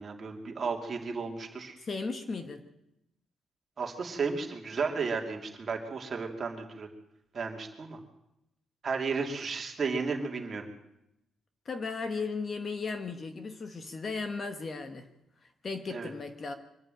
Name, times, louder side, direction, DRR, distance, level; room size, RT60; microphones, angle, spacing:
voice 1, 0.0-1.8 3.8-6.9 7.3-8.0 8.8-10.7 15.9-16.1, right 4 dB, 30° right, 3 dB, 2.8 m, -33 dB
voice 2, 1.8-2.6 11.6-15.1 15.6-16.5, left 4 dB, 30° left, 8 dB, 1.2 m, -36 dB
24.0 x 12.0 x 9.1 m, 0.86 s
cardioid pair, 180°, 0 cm